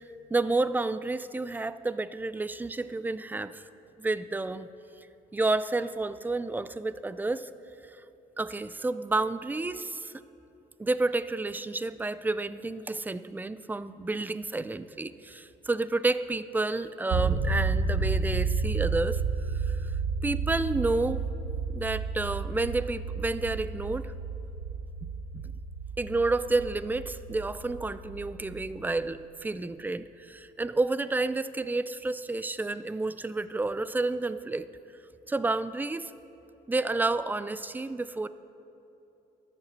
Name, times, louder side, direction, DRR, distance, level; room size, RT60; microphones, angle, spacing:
voice 1, 0.3-3.6 4.0-4.7 5.3-7.5 8.4-10.1 10.8-19.2 19.5-19.9 20.2-21.2 21.7-24.1 25.0-25.1 25.3-25.5 26.0-34.7 35.3-36.1 36.7-38.3, right 2 dB, 10° right, 14 dB, 0.3 m, -30 dB
sound 1, 17.1-29.0, right 4 dB, 70° right, 1.2 m, -31 dB
12.5 x 6.7 x 7.5 m, 2.9 s
cardioid pair, 110°, 17 cm